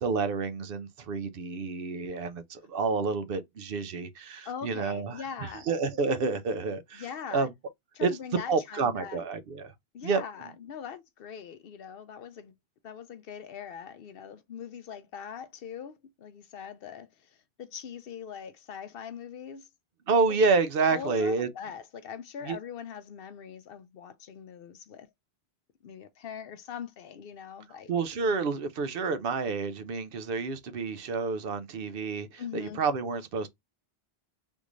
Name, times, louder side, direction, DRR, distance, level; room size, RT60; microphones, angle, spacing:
voice 1, 0.0-7.0 7.3-7.5 8.0-8.1 8.5-9.7 10.0-10.2 20.1-21.5 22.5-22.6 27.9-33.5, right 4 dB, 65° right, 0.8 m, -29 dB
voice 2, 4.4-5.7 6.9-7.5 8.0-9.2 9.9-12.5 12.8-19.7 20.3-20.4 20.9-25.1 25.8-27.9 32.4-32.8, left 7 dB, 65° left, 0.7 m, -42 dB
3.6 x 2.5 x 3.0 m
omnidirectional pair, 1.1 m